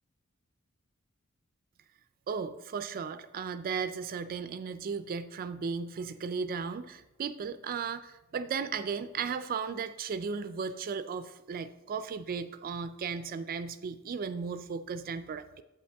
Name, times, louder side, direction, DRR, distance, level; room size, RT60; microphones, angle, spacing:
voice 1, 2.3-15.6, right 5 dB, 40° right, 12 dB, 0.3 m, -35 dB
8.5 x 7.9 x 3.4 m, 1.0 s
head